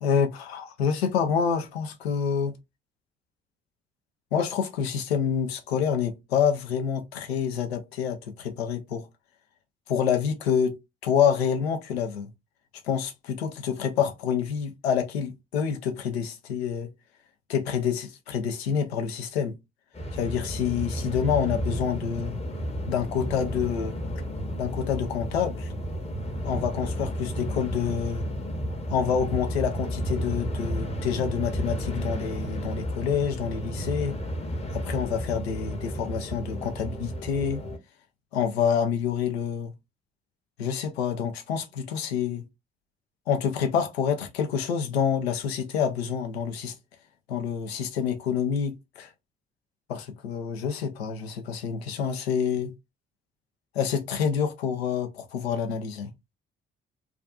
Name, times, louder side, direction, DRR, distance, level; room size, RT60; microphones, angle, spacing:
voice 1, 0.0-2.6 4.3-9.1 9.9-12.3 12.8-16.9 17.5-19.5 20.1-22.4 22.9-24.0 24.6-25.7 26.4-28.2 28.9-34.2 34.7-37.6 38.3-39.7 40.6-42.4 43.3-46.7 47.3-49.1 49.9-52.7 53.7-56.1, left 7 dB, 90° left, 0.5 m, -27 dB
sound 1, 19.9-37.8, equal, 20° left, 0.7 m, -32 dB
2.5 x 2.3 x 2.2 m
hypercardioid pair, 40°, 30 cm